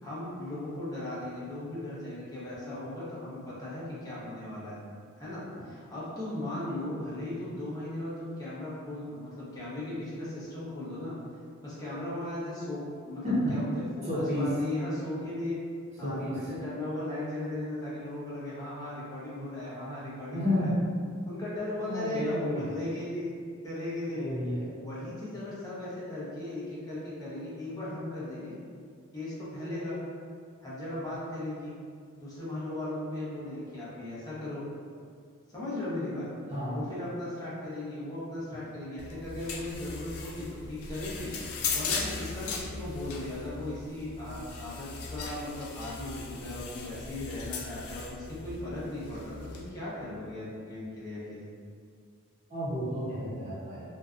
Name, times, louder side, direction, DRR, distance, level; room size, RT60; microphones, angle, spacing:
voice 1, 0.0-4.8 5.2-11.1 11.6-13.2 13.5-13.7 14.0-15.6 16.0-20.7 21.3-23.3 23.6-24.2 24.8-28.6 29.1-30.0 30.6-31.7 32.2-34.6 35.5-36.3 36.7-51.5, left 1 dB, 15° left, -10 dB, 0.7 m, -37 dB
voice 2, 13.2-13.6 14.0-14.5 16.0-16.4 20.3-20.8 21.9-22.7 24.1-24.7 36.5-36.8 52.5-53.8, left 1 dB, 30° right, -10 dB, 0.7 m, -31 dB
sound 1, 39.0-49.7, left 4 dB, 80° left, 0.3 m, -38 dB
2.6 x 2.3 x 2.3 m, 2.2 s
head